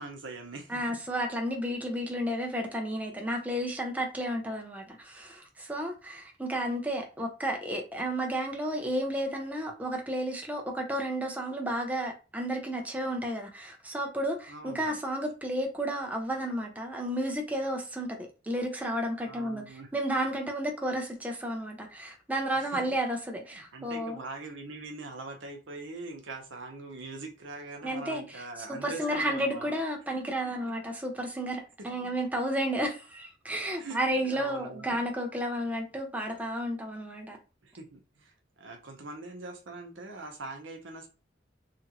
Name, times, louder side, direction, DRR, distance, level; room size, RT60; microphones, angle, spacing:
voice 1, 0.0-1.0 14.5-15.0 19.3-19.9 22.6-22.8 23.5-29.7 30.4-30.7 32.0-32.1 33.8-34.0 34.2-35.0 37.6-41.1, right 3 dB, 75° right, 0.7 m, -43 dB
voice 2, 0.7-24.2 27.8-37.4, right 1 dB, 10° right, 0.5 m, -32 dB
2.9 x 2.4 x 2.8 m
head